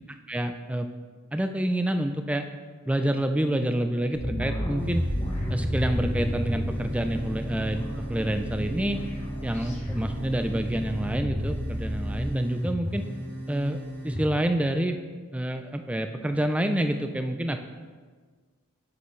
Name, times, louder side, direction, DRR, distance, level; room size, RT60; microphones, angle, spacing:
voice 1, 0.3-0.9 1.3-2.5 2.9-5.1 5.5-9.0 9.4-13.1 13.5-15.0 15.3-17.6, right 1 dB, 5° right, 7 dB, 0.3 m, -28 dB
sound 1, 4.1-12.3, equal, 30° left, 1.3 m, -33 dB
sound 2, 4.8-14.2, equal, 10° left, 0.9 m, -34 dB
6.8 x 6.8 x 3.2 m, 1.5 s
head